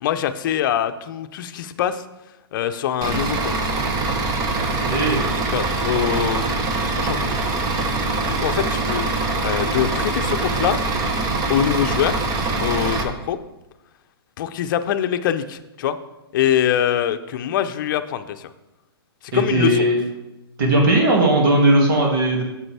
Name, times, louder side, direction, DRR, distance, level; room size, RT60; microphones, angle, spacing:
voice 1, 0.0-2.0 2.5-3.7 5.5-6.5 7.0-7.3 8.3-9.1 9.4-10.8 11.5-12.2 12.6-13.4 14.4-16.0 16.3-18.5 19.2-19.9, left 10 dB, 50° left, 10 dB, 0.6 m, -23 dB
Bus / Idling, 3.0-13.0, right 3 dB, 25° right, 1.1 m, -23 dB
voice 2, 4.6-5.3 19.3-20.0 20.6-22.4, right 1 dB, 55° right, -1 dB, 2.3 m, -18 dB
9.8 x 7.4 x 3.4 m, 0.98 s
hypercardioid pair, 125°, 13 cm